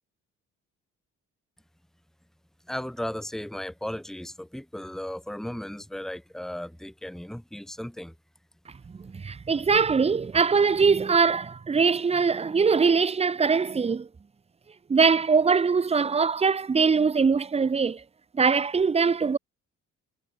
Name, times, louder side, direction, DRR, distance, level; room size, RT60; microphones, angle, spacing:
voice 1, 2.7-8.1, left 1 dB, ahead, 2.0 m, -36 dB
voice 2, 9.0-14.1 14.9-18.0 18.3-19.4, right 5 dB, 20° right, 0.6 m, -22 dB
cardioid pair, 90°, 30 cm